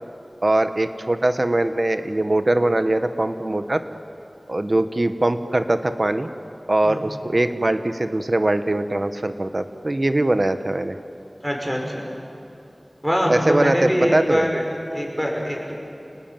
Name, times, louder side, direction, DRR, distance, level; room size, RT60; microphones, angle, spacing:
voice 1, 0.4-3.8 4.5-6.3 6.7-10.9 13.3-14.5, right 1 dB, 55° right, 9 dB, 1.3 m, -21 dB
voice 2, 11.4-12.0 13.0-14.6 14.9-15.7, equal, 5° right, 0 dB, 6.1 m, -23 dB
29.0 x 19.5 x 9.1 m, 2.8 s
wide cardioid pair, 45°, 0 cm